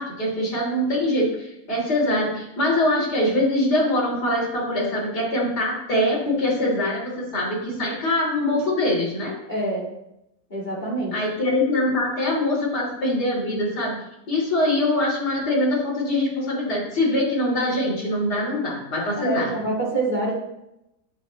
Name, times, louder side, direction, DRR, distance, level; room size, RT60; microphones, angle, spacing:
voice 1, 0.0-9.3 11.1-13.9 14.3-19.5, left 1 dB, 80° left, -5 dB, 3.9 m, -23 dB
voice 2, 9.5-9.8 10.5-11.1 19.1-20.3, right 2 dB, 25° left, -5 dB, 2.5 m, -26 dB
16.0 x 6.0 x 3.1 m, 0.87 s
omnidirectional pair, 1.7 m